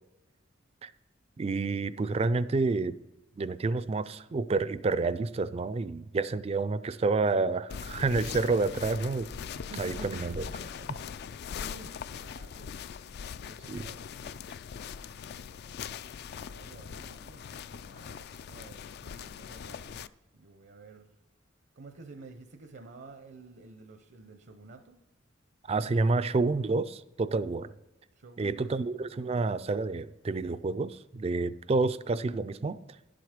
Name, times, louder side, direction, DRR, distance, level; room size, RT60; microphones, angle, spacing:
voice 1, 1.4-3.0 3.4-9.3 9.8-10.4 13.7-13.9 25.7-27.7 28.4-32.8, right 3 dB, 30° right, 15 dB, 0.3 m, -29 dB
sound 1, 7.7-20.1, left 7 dB, 55° left, 0.3 m, -41 dB
voice 2, 9.6-11.1 11.6-14.5 15.1-15.7 16.4-17.4 17.7-20.0 20.3-21.1 21.8-24.9 28.2-28.7 29.2-29.5, right 2 dB, 60° right, 7 dB, 0.7 m, -50 dB
11.0 x 7.8 x 5.0 m, 1.0 s
head